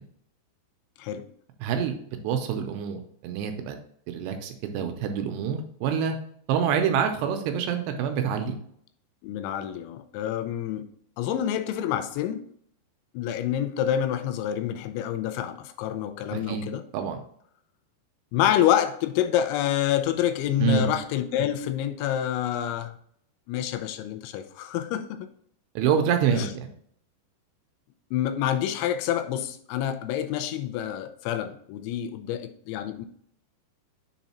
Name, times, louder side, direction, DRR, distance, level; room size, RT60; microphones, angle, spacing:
voice 1, 1.6-3.8 4.1-6.2 6.5-8.6 16.3-16.6 16.9-17.2 20.6-20.9 25.8-26.7, right 7 dB, 80° right, 5 dB, 2.7 m, -26 dB
voice 2, 9.2-10.9 11.2-12.4 13.1-16.8 18.3-23.0 23.5-25.3 26.3-26.5 28.1-33.1, left 11 dB, 90° left, 8 dB, 3.0 m, -27 dB
7.1 x 3.7 x 4.2 m, 0.65 s
omnidirectional pair, 5.2 m